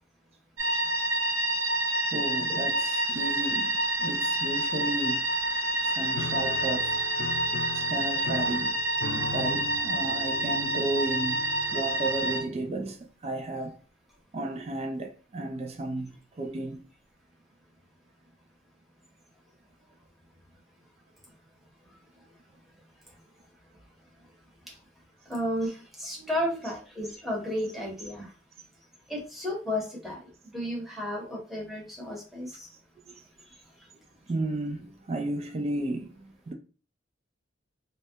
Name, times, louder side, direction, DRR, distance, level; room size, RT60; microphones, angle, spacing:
sound 1, 0.6-12.4, right 2 dB, 90° right, 0.7 m, -28 dB
voice 1, 2.1-5.3 5.8-6.9 7.7-8.8 9.1-13.8 14.3-16.8 26.2-26.3 34.3-36.5, right 2 dB, 30° right, 0.3 m, -33 dB
Piano, 6.2-12.9, left 4 dB, 55° left, 0.3 m, -40 dB
voice 2, 25.3-28.3 29.1-32.7, left 1 dB, ahead, 0.9 m, -33 dB
3.1 x 2.2 x 2.7 m
head